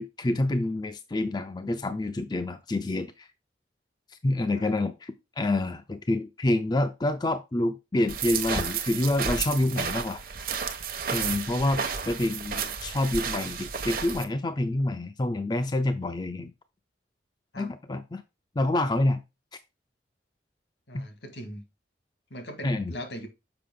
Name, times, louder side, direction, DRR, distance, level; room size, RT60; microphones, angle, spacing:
voice 1, 0.0-3.3 4.2-10.2 11.1-16.5 17.6-18.2 18.6-19.2 20.9-21.0 22.6-22.9, left 1 dB, 25° left, 0.4 m, -27 dB
sound 1, 8.1-14.2, right 6 dB, 55° right, 1.0 m, -32 dB
voice 2, 20.9-21.6 22.3-23.3, equal, 80° left, 1.9 m, -40 dB
6.8 x 5.4 x 3.7 m
head